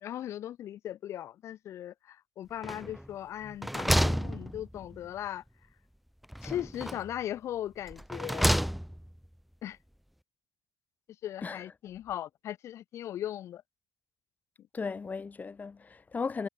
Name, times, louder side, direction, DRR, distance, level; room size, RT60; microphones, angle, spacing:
voice 1, 0.0-5.4 6.4-8.6 9.6-9.8 11.2-13.6, left 11 dB, 75° left, 1.6 m, -38 dB
sound 1, 2.6-3.1 3.4-5.1 6.3-7.2 7.9-9.1, equal, ahead, 1.9 m, -30 dB
voice 2, 14.7-16.5, left 4 dB, 35° left, 2.4 m, -36 dB
cardioid pair, 90°, 5 cm